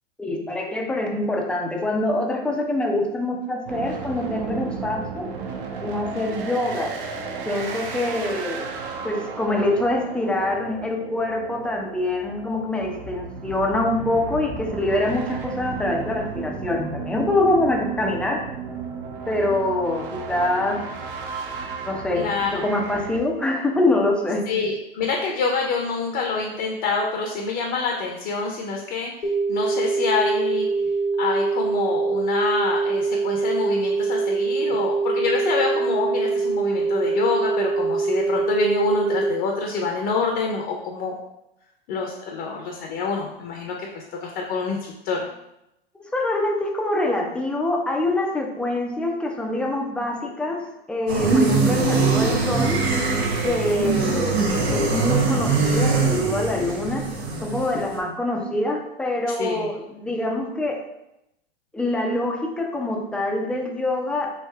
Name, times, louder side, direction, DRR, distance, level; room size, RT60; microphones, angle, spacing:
voice 1, 0.2-5.3 5.8-6.9 7.5-8.7 9.0-18.4 19.3-20.8 21.8-24.5 34.7-34.8 46.1-52.9 53.4-57.1 57.4-60.8 61.7-64.3, left 2 dB, 5° left, 1 dB, 0.3 m, -25 dB
sound 1, 3.6-23.2, right 5 dB, 60° right, 0.7 m, -34 dB
voice 2, 22.1-22.7 24.5-29.1 29.5-30.7 31.2-41.1 41.9-45.2 59.4-59.7, left 4 dB, 45° left, 0 dB, 0.6 m, -26 dB
sound 2, 29.2-39.2, right 4 dB, 90° left, 0.6 m, -23 dB
sound 3, 51.1-57.9, right 4 dB, 85° right, 0.9 m, -22 dB
3.3 x 2.6 x 3.4 m, 0.86 s
hypercardioid pair, 105°, 31 cm